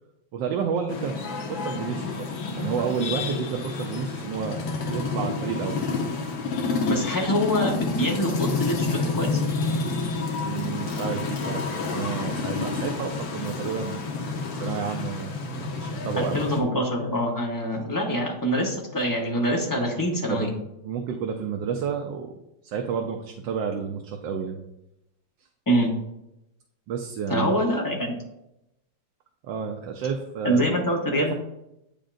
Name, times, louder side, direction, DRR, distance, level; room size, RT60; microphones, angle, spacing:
voice 1, 0.3-1.2 1.5-5.8 10.4-14.0 14.6-15.4 15.7-16.4 20.3-20.5 20.8-22.3 22.6-24.6 26.9-27.5 29.4-30.8 31.2-31.3, right 7 dB, 80° right, 3 dB, 1.3 m, -30 dB
sound 1, 0.9-16.6, left 4 dB, 85° left, 1.6 m, -29 dB
voice 2, 6.9-9.4 16.2-20.5 25.7-25.9 27.3-28.2 30.4-31.3, equal, 15° left, 0 dB, 0.6 m, -25 dB
8.7 x 5.1 x 2.5 m, 0.86 s
omnidirectional pair, 2.0 m